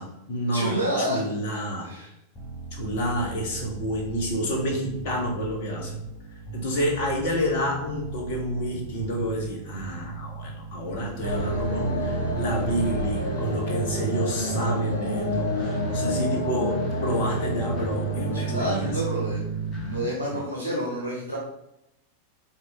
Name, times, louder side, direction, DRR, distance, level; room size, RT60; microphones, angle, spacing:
voice 1, 0.0-1.9 2.7-6.0 6.5-19.0 20.3-20.4, equal, 50° left, 0 dB, 1.9 m, -29 dB
voice 2, 0.5-1.3 1.8-2.1 15.8-16.2 18.3-19.5 19.9-21.4, equal, 90° left, -3 dB, 1.5 m, -29 dB
sound 1, 2.4-20.0, right 4 dB, 30° left, 1.8 m, -33 dB
sound 2, 11.2-18.6, left 3 dB, 85° right, 2.2 m, -30 dB
7.2 x 3.7 x 4.2 m, 0.84 s
figure-of-eight pair, 90°, 0 cm